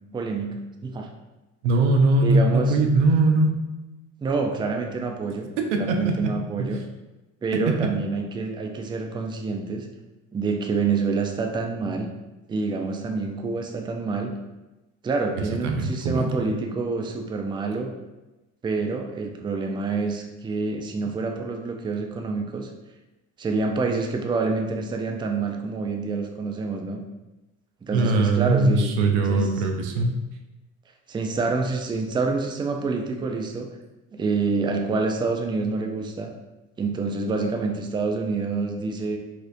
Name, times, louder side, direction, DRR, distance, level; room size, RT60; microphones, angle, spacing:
voice 1, 0.1-1.1 2.2-2.8 4.2-6.8 7.4-9.9 10.3-12.1 12.5-14.3 15.0-17.9 18.6-22.7 23.4-27.0 27.8-28.9 29.3-29.5 31.1-33.7 34.1-36.3 36.8-39.2, right 4 dB, 15° right, 3 dB, 0.4 m, -27 dB
voice 2, 1.6-3.5 5.6-6.8 7.5-7.7 15.6-16.3 27.9-30.2, right 2 dB, 85° right, 3 dB, 0.6 m, -21 dB
4.2 x 2.5 x 2.6 m, 1.1 s
hypercardioid pair, 75°, 34 cm